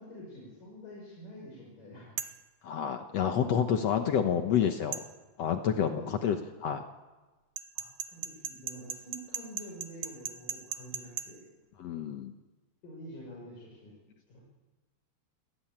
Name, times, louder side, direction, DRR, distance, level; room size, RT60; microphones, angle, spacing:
voice 1, 0.0-2.2 3.2-4.3 5.9-6.3 7.8-11.5 12.8-13.9 14.3-14.4, equal, 55° left, -3 dB, 7.4 m, -47 dB
sound 1, 2.2-2.4 4.9-5.1 7.6-11.3, right 9 dB, 70° right, 2.1 m, -37 dB
voice 2, 2.6-5.0 5.4-6.4 6.6-6.8 11.8-12.3, left 8 dB, 85° left, 6 dB, 1.4 m, -28 dB
28.0 x 17.5 x 8.9 m, 1.2 s
omnidirectional pair, 4.7 m